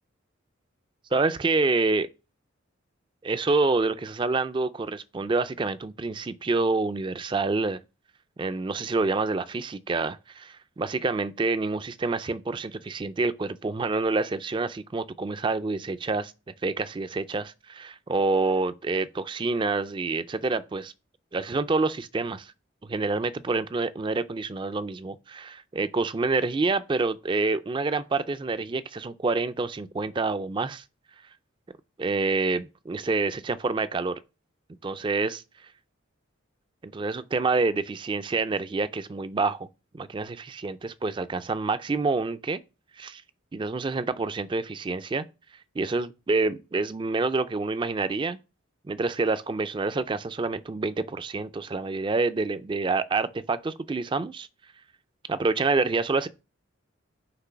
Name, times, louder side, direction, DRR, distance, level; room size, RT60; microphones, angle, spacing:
voice 1, 1.1-2.1 3.2-7.8 8.4-16.3 16.6-20.9 21.3-22.5 22.8-30.8 32.0-34.2 34.8-35.4 36.8-39.7 39.9-42.6 43.0-43.2 43.5-45.3 45.8-48.4 48.9-54.5 55.3-56.3, right 3 dB, 25° right, 0.3 m, -27 dB
5.9 x 3.2 x 5.6 m
head